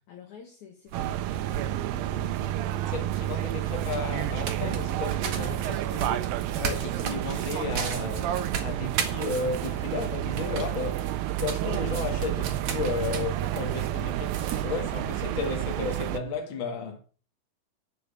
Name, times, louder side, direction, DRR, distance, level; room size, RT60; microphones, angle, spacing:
voice 1, 0.0-3.1 5.3-6.1 6.4-6.8 9.5-9.9 14.7-14.9, left 8 dB, 60° left, 2.7 m, -48 dB
sound 1, 0.9-14.6, right 7 dB, 55° right, 2.4 m, -38 dB
sound 2, 0.9-16.2, right 13 dB, 80° right, 2.4 m, -30 dB
voice 2, 2.9-6.3 6.6-17.0, left 4 dB, 40° left, 2.3 m, -34 dB
10.5 x 6.4 x 6.8 m
omnidirectional pair, 4.3 m